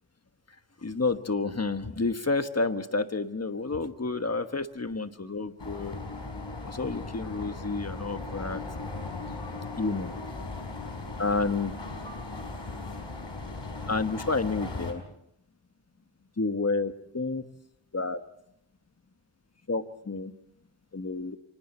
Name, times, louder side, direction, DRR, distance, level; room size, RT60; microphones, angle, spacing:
voice 1, 0.8-6.0 6.6-8.6 9.7-10.1 11.2-11.7 13.9-15.0 16.4-17.4 17.9-18.2 19.7-20.3 20.9-21.4, left 3 dB, 30° left, 9 dB, 1.3 m, -30 dB
sound 1, 5.6-14.9, left 3 dB, 60° left, 4.9 m, -38 dB
29.5 x 25.0 x 4.4 m, 0.77 s
wide cardioid pair, 70°, 49 cm